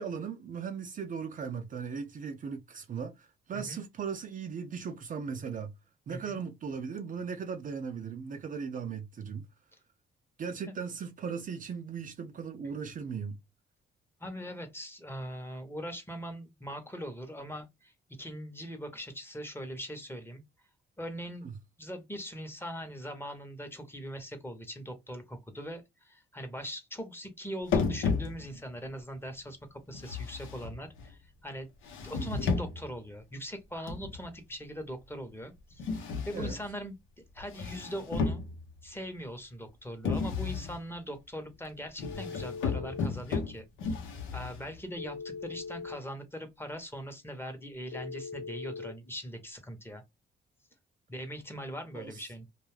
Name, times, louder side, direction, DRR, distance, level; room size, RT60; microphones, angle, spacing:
voice 1, 0.0-5.7 6.1-9.5 10.4-13.4 21.4-21.5 32.2-32.3 36.3-36.6 51.9-52.2, right 6 dB, 40° right, 0.5 m, -38 dB
voice 2, 6.1-6.4 14.2-17.9 18.2-20.4 21.0-21.5 21.8-31.7 32.0-35.9 36.3-37.0 37.3-38.4 38.8-44.0 44.3-50.0 51.1-52.4, equal, 10° left, 0.8 m, -41 dB
sound 1, 27.7-28.7 29.9-31.1 31.8-33.0 33.9-34.3 35.8-36.7 37.4-38.9 40.0-40.8 42.0-44.8, left 5 dB, 85° left, 0.8 m, -33 dB
Telephone, 42.0-43.0 45.0-46.0 47.9-48.9, left 5 dB, 50° left, 0.8 m, -41 dB
2.5 x 2.3 x 3.2 m
cardioid pair, 90°, 20 cm